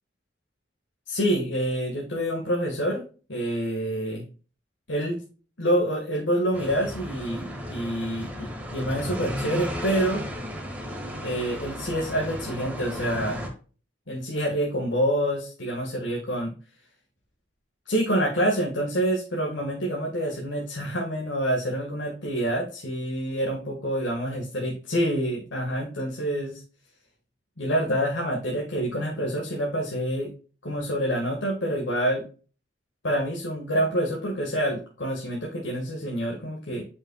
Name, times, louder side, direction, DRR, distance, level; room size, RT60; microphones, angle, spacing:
voice 1, 1.1-3.0 3.3-4.2 4.9-5.2 5.6-10.2 11.2-13.4 14.1-16.5 17.9-26.6 27.6-30.3 30.6-32.2 33.0-36.9, equal, 85° left, -1 dB, 1.6 m, -27 dB
sound 1, 6.5-13.5, equal, 10° right, 1.5 m, -34 dB
8.4 x 5.4 x 2.2 m, 0.37 s
head